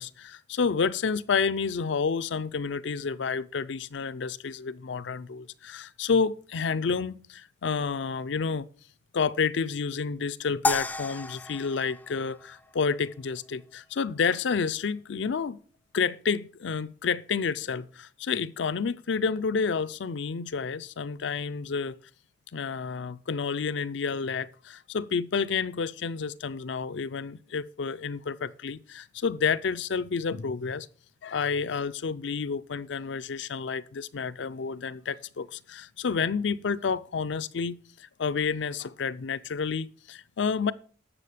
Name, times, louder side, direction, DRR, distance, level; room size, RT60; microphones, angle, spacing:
voice 1, 0.0-8.7 9.1-15.6 15.9-22.0 22.5-30.9 31.2-37.8 38.2-40.7, left 5 dB, 70° left, 0.5 m, -30 dB
sound 1, 10.6-13.0, left 2 dB, 10° left, 0.4 m, -32 dB
11.0 x 7.3 x 5.0 m
head